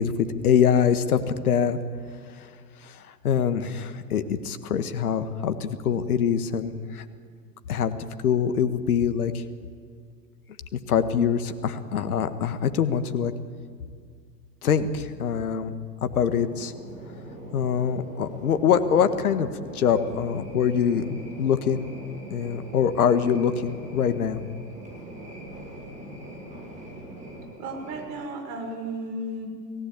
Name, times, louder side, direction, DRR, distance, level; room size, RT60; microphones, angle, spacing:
voice 1, 0.0-1.8 2.8-7.0 7.7-7.9 8.2-9.4 10.9-13.3 14.6-15.7 16.0-16.7 17.5-21.9 22.3-24.4, left 7 dB, 60° left, 9 dB, 1.8 m, -24 dB
sound 1, 16.0-28.1, right 1 dB, 15° right, 7.2 m, -42 dB
voice 2, 27.6-29.5, right 1 dB, 40° right, 4 dB, 5.9 m, -34 dB
30.0 x 18.0 x 9.0 m, 2.1 s
figure-of-eight pair, 100°, 49 cm